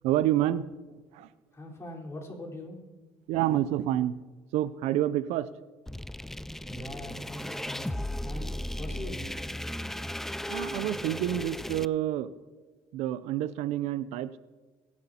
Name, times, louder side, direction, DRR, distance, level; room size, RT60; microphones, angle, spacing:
voice 1, 0.0-1.3 3.3-4.1 4.5-5.5 10.5-12.3 12.9-14.4, right 13 dB, 75° right, 16 dB, 0.5 m, -28 dB
voice 2, 1.5-2.8 6.6-9.3, left 1 dB, 25° left, -2 dB, 4.0 m, -42 dB
sound 1, 5.9-11.9, left 1 dB, 5° left, 0.3 m, -36 dB
22.5 x 10.5 x 2.8 m, 1.3 s
supercardioid pair, 85°, 11 cm